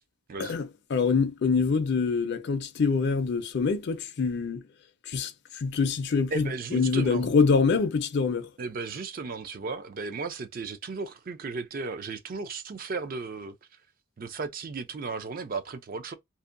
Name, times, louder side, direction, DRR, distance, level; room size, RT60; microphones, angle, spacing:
voice 1, 0.4-4.6 5.1-8.5, left 5 dB, 55° left, 0.4 m, -25 dB
voice 2, 6.3-7.3 8.6-13.5 14.2-16.1, right 4 dB, 45° right, 0.4 m, -35 dB
2.6 x 2.1 x 2.4 m
head